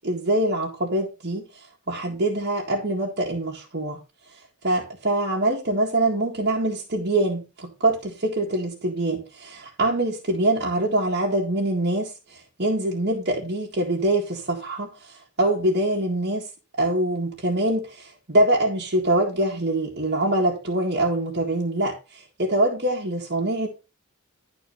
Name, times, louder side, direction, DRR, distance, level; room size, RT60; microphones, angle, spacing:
voice 1, 0.0-4.0 4.3-23.7, right 1 dB, 50° right, 1.8 m, -24 dB
11.5 x 4.3 x 5.4 m
head